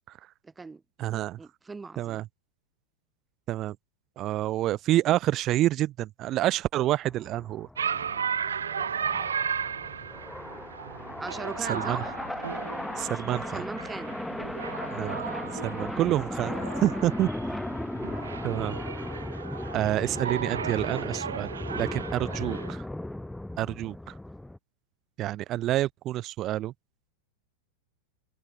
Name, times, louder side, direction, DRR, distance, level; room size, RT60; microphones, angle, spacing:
voice 1, 0.4-0.8 1.4-2.2 11.2-12.1 13.5-14.1, right 4 dB, 10° right, 3.9 m, -39 dB
voice 2, 1.0-1.4 2.0-2.3 3.5-3.8 4.2-7.7 11.7-12.0 13.0-13.6 14.9-15.3 15.6-17.3 18.4-18.8 19.7-22.8 23.6-24.1 25.2-26.7, right 14 dB, 35° right, 0.9 m, -28 dB
sound 1, 7.0-24.6, left 1 dB, 5° left, 4.9 m, -36 dB
sound 2, 7.8-22.7, right 7 dB, 70° right, 1.9 m, -35 dB
figure-of-eight pair, 90°, 0 cm